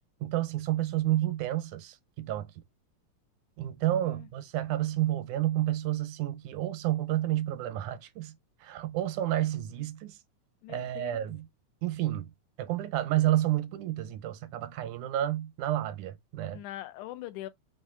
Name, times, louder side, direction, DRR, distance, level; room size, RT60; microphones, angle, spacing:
voice 1, 0.2-2.5 3.6-8.3 8.6-10.2 10.7-11.5 11.8-12.3 12.6-16.6, right 13 dB, 85° right, 2.1 m, -30 dB
voice 2, 10.6-11.2 16.5-17.5, left 14 dB, 90° left, 2.1 m, -42 dB
5.3 x 2.5 x 3.7 m
omnidirectional pair, 3.4 m